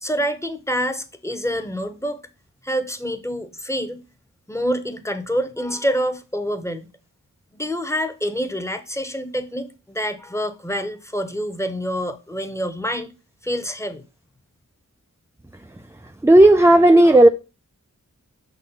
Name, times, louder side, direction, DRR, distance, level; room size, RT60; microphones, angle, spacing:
voice 1, 0.0-2.2 2.6-4.0 4.5-6.9 7.5-13.1 13.4-14.0, equal, 10° left, 1.0 m, -26 dB
voice 2, 16.2-17.3, right 1 dB, 10° right, 0.5 m, -11 dB
6.3 x 4.1 x 5.6 m
wide cardioid pair, 65°, 31 cm